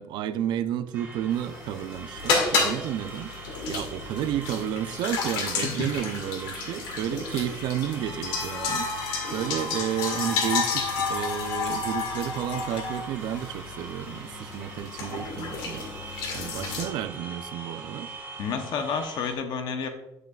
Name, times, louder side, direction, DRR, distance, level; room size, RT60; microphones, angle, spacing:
voice 1, 0.0-3.4 3.7-18.1, right 10 dB, 65° right, 0.5 m, -31 dB
sound 1, 0.9-19.3, right 2 dB, 25° right, 2.8 m, -43 dB
sound 2, 1.3-16.8, left 4 dB, 80° left, 1.8 m, -31 dB
voice 2, 18.4-19.9, left 6 dB, 60° left, 0.8 m, -30 dB
9.2 x 7.9 x 2.4 m
cardioid pair, 135°, 8 cm